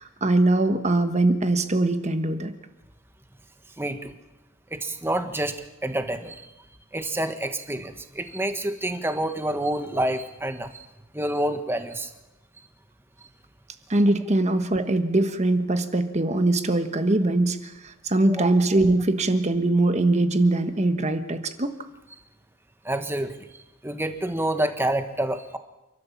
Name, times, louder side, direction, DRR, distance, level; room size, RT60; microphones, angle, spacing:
voice 1, 0.0-2.5 13.9-21.7, right 2 dB, 35° right, 8 dB, 1.3 m, -22 dB
voice 2, 3.8-4.1 4.7-5.6 5.8-6.5 6.9-10.9 11.1-12.1 18.3-18.4 22.8-23.3 23.8-25.6, right 1 dB, 10° right, 8 dB, 1.4 m, -28 dB
29.0 x 12.5 x 7.3 m, 0.99 s
head